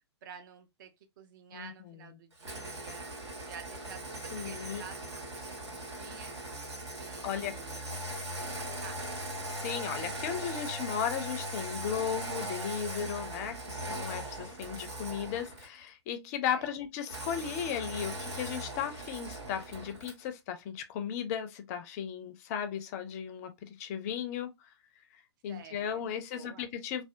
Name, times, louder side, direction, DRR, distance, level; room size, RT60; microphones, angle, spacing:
voice 1, 0.2-0.9 1.2-6.4 6.9-7.9 8.3-9.1 16.5-16.7 25.5-26.0 26.3-26.7, right 7 dB, 45° right, 0.6 m, -50 dB
voice 2, 1.5-2.0 4.3-4.8 7.2-7.6 9.5-24.7 25.1-27.0, left 8 dB, 35° left, 0.4 m, -36 dB
Engine starting, 2.4-15.8 17.1-20.3, right 1 dB, 75° right, 1.4 m, -39 dB
2.7 x 2.0 x 2.4 m
figure-of-eight pair, 115°, 15 cm